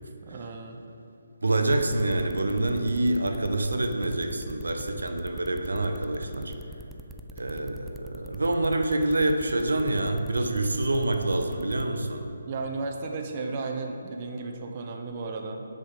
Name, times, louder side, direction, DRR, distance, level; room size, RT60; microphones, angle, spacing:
voice 1, 0.2-0.8 12.5-15.7, right 3 dB, 35° right, 2 dB, 0.7 m, -34 dB
voice 2, 1.4-6.5 7.4-12.3, right 2 dB, 80° right, 5 dB, 0.7 m, -26 dB
sound 1, 1.7-11.8, right 1 dB, 5° right, 0.3 m, -44 dB
6.4 x 5.1 x 5.7 m, 2.9 s
figure-of-eight pair, 150°, 0 cm